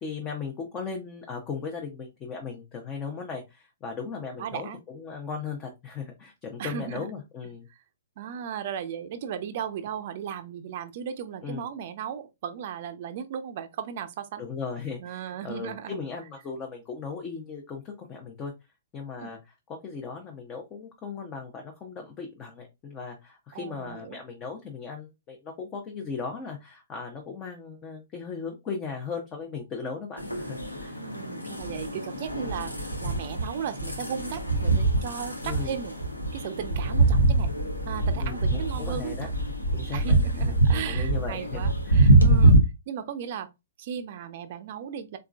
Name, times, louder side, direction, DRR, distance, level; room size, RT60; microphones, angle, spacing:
voice 1, 0.0-4.7 4.9-7.6 11.4-11.7 14.4-18.5 18.9-19.4 19.7-31.0 35.4-35.8 38.2-39.3 39.7-42.1, left 5 dB, 20° left, 0.8 m, -37 dB
voice 2, 4.4-4.8 6.6-7.1 8.2-14.4 15.0-15.9 19.2-19.3 23.5-24.2 31.0-32.7 33.0-35.9 36.3-37.6 37.9-39.3 39.9-42.6 42.9-43.5 43.8-45.2, right 8 dB, 40° right, 0.6 m, -36 dB
sound 1, 30.2-42.6, right 2 dB, 85° left, 1.0 m, -24 dB
3.9 x 3.6 x 2.3 m
figure-of-eight pair, 115°, 0 cm